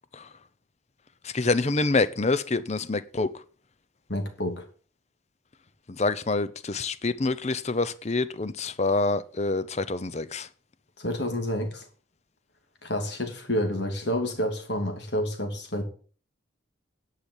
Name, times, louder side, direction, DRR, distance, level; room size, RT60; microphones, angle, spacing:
voice 1, 1.2-3.4 5.9-10.5, left 3 dB, 35° left, 0.7 m, -26 dB
voice 2, 4.1-4.7 11.0-11.8 12.8-15.8, equal, 55° left, 2.7 m, -29 dB
10.5 x 5.7 x 8.0 m
head